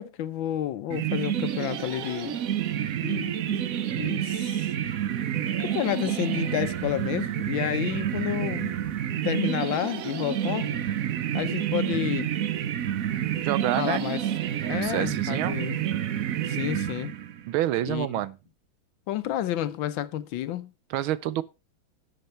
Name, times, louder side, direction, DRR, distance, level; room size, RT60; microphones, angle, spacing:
voice 1, 0.0-2.4 3.0-3.6 3.9-4.7 5.6-8.8 9.2-10.7 11.3-12.3 13.8-14.2 14.7-15.8 16.5-17.1 17.9-18.1 19.1-20.7, left 12 dB, 75° left, 1.5 m, -30 dB
sound 1, 0.9-17.5, right 10 dB, 60° right, 0.9 m, -29 dB
voice 2, 13.4-14.1 14.6-15.6 17.5-18.4 20.9-21.4, right 13 dB, 85° right, 1.5 m, -28 dB
11.0 x 7.9 x 4.4 m
omnidirectional pair, 2.2 m